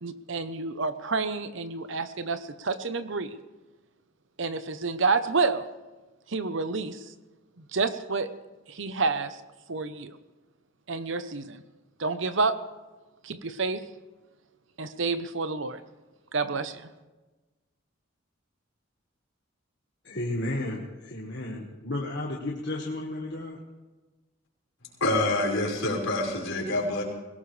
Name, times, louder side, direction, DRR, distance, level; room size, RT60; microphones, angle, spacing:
voice 1, 0.0-3.3 4.4-5.7 6.3-7.0 7.7-8.3 8.7-9.4 9.7-10.1 10.9-11.6 12.0-12.6 13.2-13.8 14.8-15.8 16.3-16.8, right 4 dB, 65° right, 11 dB, 0.9 m, -29 dB
voice 2, 20.0-23.6, left 1 dB, 55° left, -2 dB, 1.6 m, -33 dB
voice 3, 25.0-27.0, left 2 dB, 75° left, -3 dB, 5.0 m, -26 dB
21.5 x 17.5 x 3.4 m, 1.2 s
head